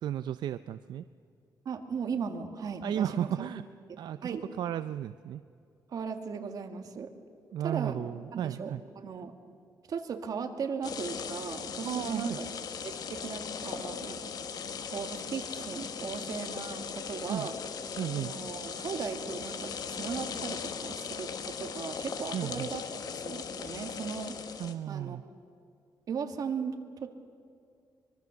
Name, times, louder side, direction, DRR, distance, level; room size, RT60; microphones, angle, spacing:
voice 1, 0.0-1.0 2.8-3.6 4.0-5.4 7.5-8.8 11.8-12.4 17.3-17.5 18.0-18.3 22.3-22.7 24.6-25.2, right 10 dB, 80° right, 13 dB, 0.5 m, -34 dB
voice 2, 1.7-3.5 4.2-4.4 5.9-7.1 7.6-8.0 8.3-9.3 9.9-12.5 12.8-14.3 14.9-17.5 18.2-25.2 26.1-27.1, right 6 dB, 60° right, 6 dB, 1.9 m, -37 dB
sound 1, 10.8-24.7, left 6 dB, 65° left, 1.5 m, -38 dB
24.5 x 21.5 x 7.0 m, 2.4 s
cardioid pair, 130°, 7 cm